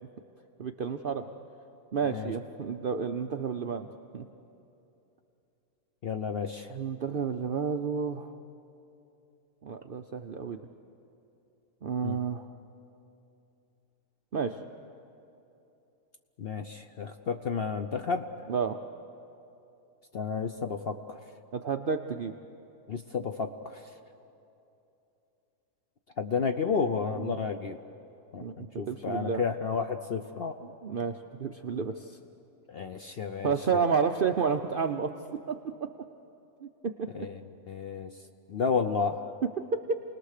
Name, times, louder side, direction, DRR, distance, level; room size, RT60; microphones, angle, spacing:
voice 1, 0.6-1.3 1.9-3.9 4.1-4.2 6.7-8.3 9.6-10.6 11.8-12.5 14.3-14.6 18.5-18.8 21.5-22.3 27.2-27.4 28.4-29.4 30.6-32.2 33.4-35.9 36.6-37.3 39.7-40.0, right 6 dB, 60° right, 6 dB, 0.6 m, -31 dB
voice 2, 6.0-6.8 12.0-12.2 16.4-18.3 20.1-21.2 22.9-23.9 26.2-27.8 28.3-30.6 32.7-33.8 37.1-37.4 37.7-38.1 38.5-39.3, left 5 dB, 55° left, 7 dB, 0.7 m, -32 dB
29.5 x 20.0 x 6.6 m, 2.8 s
omnidirectional pair, 1.7 m